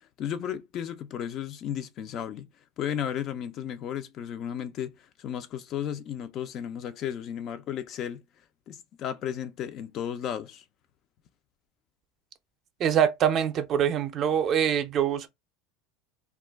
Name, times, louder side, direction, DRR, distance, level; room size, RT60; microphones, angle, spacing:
voice 1, 0.2-2.5 2.8-8.2 8.7-10.6, left 9 dB, 45° left, 0.4 m, -34 dB
voice 2, 12.8-15.3, right 9 dB, 40° right, 0.5 m, -24 dB
2.3 x 2.1 x 3.4 m
supercardioid pair, 125°, 0 cm